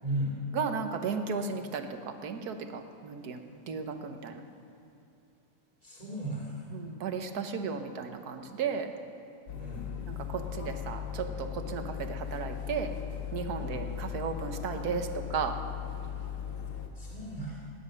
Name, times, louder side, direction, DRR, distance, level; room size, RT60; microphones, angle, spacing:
voice 1, 0.0-0.4 5.8-6.8 9.5-9.9 13.5-13.9 16.9-17.6, right 1 dB, 25° right, -6 dB, 2.6 m, -36 dB
voice 2, 0.5-4.4 6.7-8.9 10.1-12.9 13.3-15.6, right 5 dB, 75° right, 7 dB, 1.6 m, -35 dB
sound 1, 9.5-16.9, left 9 dB, 80° left, 1.8 m, -38 dB
18.5 x 10.0 x 6.4 m, 2.7 s
omnidirectional pair, 1.7 m